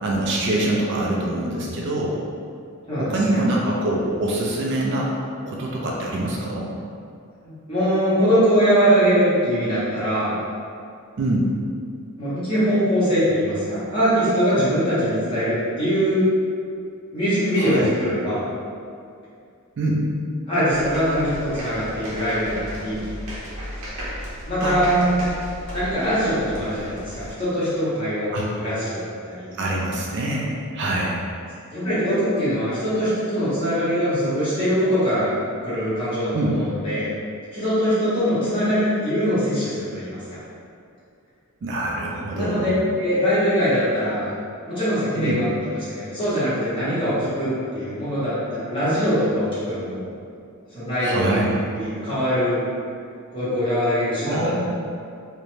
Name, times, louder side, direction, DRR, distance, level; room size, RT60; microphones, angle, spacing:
voice 1, 0.0-2.2 3.0-5.1 5.5-6.7 11.2-11.5 17.6-17.9 19.8-20.1 24.6-25.2 28.3-28.5 29.6-31.2 36.3-36.6 41.6-42.7 45.2-45.4 51.0-51.6 54.3-54.6, right 1 dB, 55° right, -3 dB, 0.3 m, -24 dB
voice 2, 2.9-3.4 7.4-10.3 12.2-16.2 17.1-18.4 20.5-23.1 24.5-25.0 25.7-29.5 31.7-35.3 35.6-37.1 37.5-40.2 42.4-42.7 43.0-44.3 44.6-50.1 50.7-51.4 51.7-52.6 53.3-54.5, equal, 25° left, -13 dB, 1.0 m, -22 dB
sound 1, 20.7-27.3, equal, 75° right, 0.7 m, -35 dB
2.5 x 2.1 x 3.1 m, 2.4 s
head